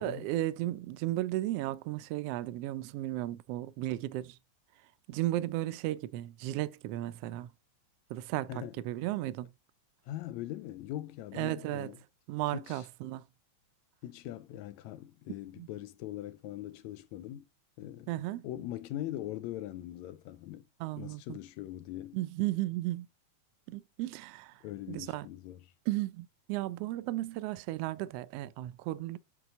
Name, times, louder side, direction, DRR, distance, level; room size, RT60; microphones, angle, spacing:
voice 1, 0.0-4.4 5.1-7.5 8.1-9.5 11.3-11.9 12.3-13.2 15.6-15.7 18.1-18.5 20.8-21.4 22.1-23.1 23.7-24.6 24.9-25.3 25.9-29.2, right 16 dB, 80° right, 1.4 m, -34 dB
voice 2, 10.1-12.0 12.5-12.9 14.0-17.5 17.8-18.1 18.4-20.7 21.0-22.2 24.6-25.7, left 13 dB, 80° left, 2.0 m, -41 dB
8.8 x 3.7 x 6.9 m
omnidirectional pair, 3.3 m